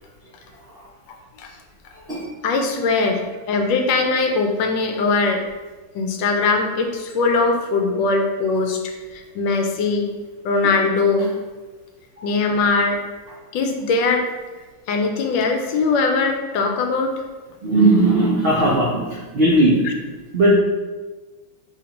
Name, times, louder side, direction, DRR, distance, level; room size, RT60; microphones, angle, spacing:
voice 1, 2.4-5.4 5.9-8.8 9.1-10.1 10.4-11.3 12.2-13.0 13.5-14.3 14.9-17.1 19.8-19.9, left 3 dB, 75° left, 3 dB, 1.2 m, -20 dB
voice 2, 17.6-19.8 20.3-20.5, right 1 dB, 75° right, -6 dB, 0.5 m, -17 dB
4.9 x 3.5 x 2.9 m, 1.3 s
omnidirectional pair, 2.2 m